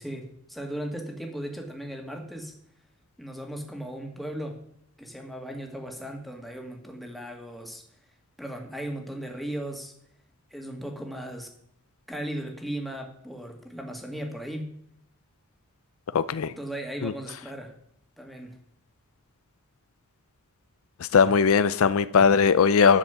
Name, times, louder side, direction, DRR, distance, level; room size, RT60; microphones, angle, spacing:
voice 1, 0.0-2.5 3.2-4.6 5.0-7.8 8.4-9.9 10.5-11.5 12.1-14.7 16.6-17.7 18.2-18.6, right 1 dB, ahead, 1.9 m, -36 dB
voice 2, 16.1-16.5 17.0-17.1 21.1-23.0, left 6 dB, 70° left, 0.5 m, -19 dB
11.5 x 6.9 x 6.9 m
head